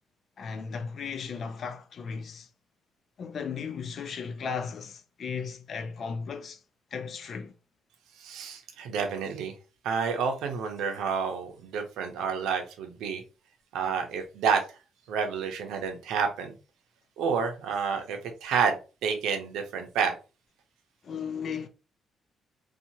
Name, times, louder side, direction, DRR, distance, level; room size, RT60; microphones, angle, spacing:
voice 1, 0.4-2.5 3.2-6.6 6.9-7.5 21.0-21.7, left 6 dB, 55° left, 0.5 m, -36 dB
voice 2, 8.2-9.5 9.8-13.2 13.7-14.6 15.1-16.6 17.2-20.1, right 6 dB, 85° right, 0.6 m, -29 dB
2.7 x 2.4 x 2.8 m
cardioid pair, 90°, 0 cm